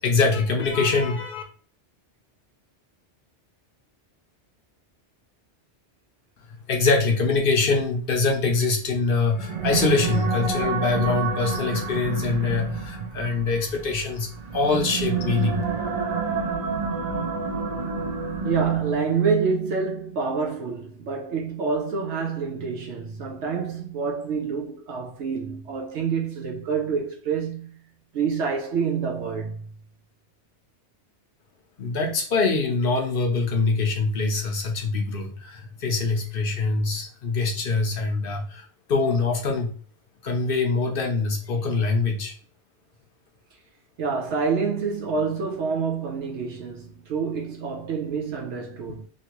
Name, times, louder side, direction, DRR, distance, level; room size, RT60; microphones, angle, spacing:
voice 1, 0.0-1.4 6.7-15.6 31.8-39.7 40.2-42.3, left 3 dB, 60° left, 0.7 m, -24 dB
sound 1, 9.3-19.1, right 5 dB, 50° right, 0.5 m, -29 dB
voice 2, 18.4-27.7 28.1-29.6 44.0-49.1, right 5 dB, 75° right, 1.0 m, -27 dB
3.1 x 2.6 x 2.9 m
omnidirectional pair, 1.2 m